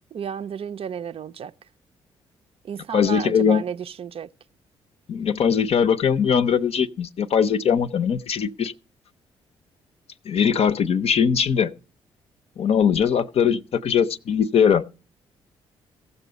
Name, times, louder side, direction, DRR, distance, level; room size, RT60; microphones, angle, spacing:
voice 1, 0.1-1.5 2.6-4.3, right 8 dB, 50° right, 0.5 m, -32 dB
voice 2, 2.9-3.6 5.1-8.7 10.3-11.7 12.6-14.8, left 7 dB, 55° left, 0.6 m, -20 dB
16.0 x 7.0 x 5.0 m
hypercardioid pair, 45°, 13 cm